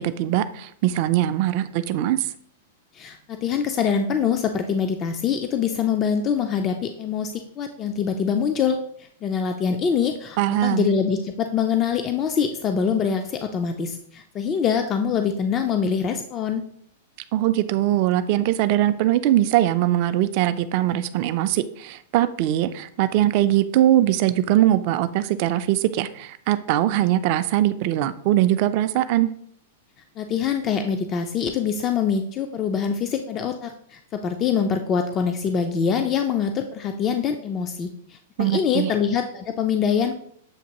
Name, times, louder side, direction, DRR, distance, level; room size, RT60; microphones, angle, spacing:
voice 1, 0.0-2.3 10.4-10.9 17.3-29.3 38.4-38.9, right 13 dB, 50° right, 11 dB, 0.3 m, -21 dB
voice 2, 2.9-8.8 9.2-16.6 30.2-40.1, left 7 dB, 30° left, 6 dB, 0.3 m, -24 dB
7.1 x 2.6 x 2.9 m, 0.64 s
hypercardioid pair, 135°, 0 cm